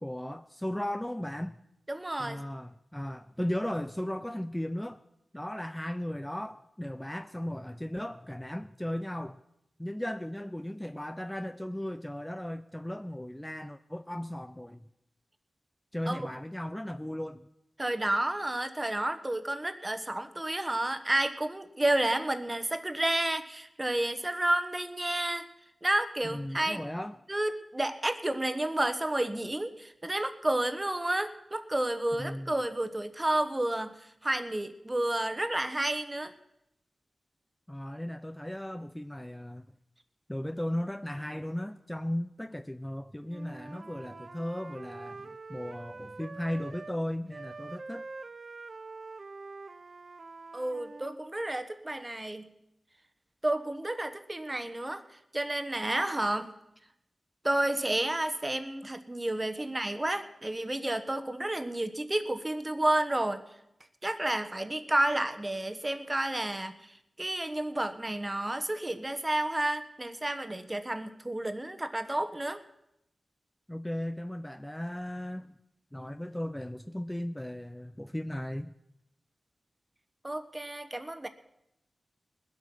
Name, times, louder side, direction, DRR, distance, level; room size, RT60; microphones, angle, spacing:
voice 1, 0.0-1.6 2.2-5.0 5.3-9.4 9.8-14.8 15.9-17.5 26.2-27.2 32.2-32.6 37.7-39.7 40.3-48.0 73.7-75.6 75.9-78.7, left 1 dB, 10° left, 0.5 m, -36 dB
voice 2, 1.9-2.4 16.1-16.3 17.8-25.5 25.8-26.8 27.3-36.3 50.5-52.5 53.4-55.0 55.3-56.5 57.4-63.4 64.0-72.6 80.2-81.3, right 1 dB, 25° right, 1.2 m, -31 dB
Wind instrument woodwind instrument, 43.3-47.0 47.3-51.1, right 3 dB, 55° right, 0.6 m, -45 dB
20.0 x 8.3 x 6.2 m
cardioid pair, 55°, 0 cm